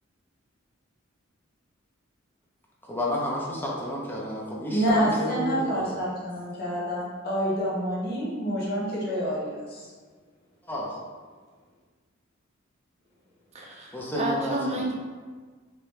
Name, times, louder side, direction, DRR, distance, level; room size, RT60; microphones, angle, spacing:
voice 1, 2.8-6.0 10.7-10.9 13.9-14.9, left 1 dB, 10° left, -4 dB, 0.6 m, -31 dB
voice 2, 4.7-9.8, equal, 50° left, -6 dB, 1.0 m, -27 dB
voice 3, 13.5-14.9, right 1 dB, 35° right, -1 dB, 0.6 m, -30 dB
3.2 x 2.9 x 3.2 m, 1.5 s
head